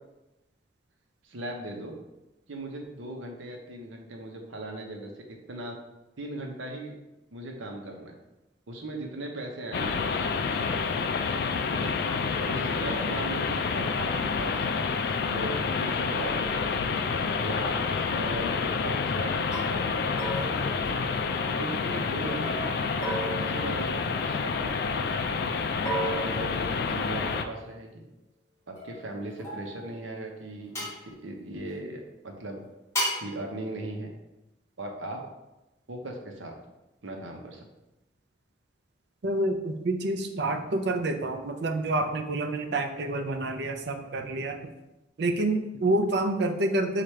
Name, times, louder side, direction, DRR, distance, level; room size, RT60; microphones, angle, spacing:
voice 1, 1.2-1.9 2.5-5.8 6.2-7.0 7.3-8.1 8.7-10.7 11.7-12.0 12.4-16.7 17.4-20.2 20.9-21.1 21.5-22.9 23.3-24.8 26.0-28.0 28.7-32.6 33.0-34.1 34.8-35.3 35.9-36.6 37.0-37.7, right 1 dB, 90° right, 1 dB, 0.8 m, -38 dB
sound 1, 9.7-27.4, left 5 dB, 55° left, 0.3 m, -28 dB
sound 2, 19.5-19.7 20.2-21.5 22.4-24.6 25.8-27.3 28.8-30.0 30.7-31.0 32.9-33.3, right 1 dB, 15° left, 1.2 m, -35 dB
voice 2, 39.2-44.7 45.2-47.0, right 2 dB, 60° right, 5 dB, 0.5 m, -28 dB
4.8 x 2.5 x 4.3 m, 0.97 s
head